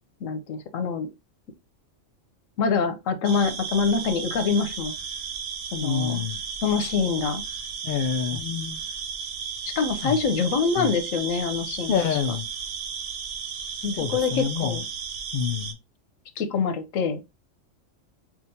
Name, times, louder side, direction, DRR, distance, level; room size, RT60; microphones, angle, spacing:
voice 1, 0.2-1.1 2.6-4.9 5.7-6.2 6.6-7.4 8.3-8.8 9.8-11.9 13.8-14.9 16.4-17.2, left 5 dB, 85° left, 1.1 m, -25 dB
sound 1, 3.2-15.7, right 6 dB, 70° right, 1.0 m, -34 dB
voice 2, 5.8-6.4 7.8-8.4 10.0-10.2 10.8-10.9 11.9-12.5 14.0-14.8 15.3-15.8, left 7 dB, 60° left, 0.5 m, -27 dB
6.0 x 2.4 x 2.7 m
omnidirectional pair, 1.3 m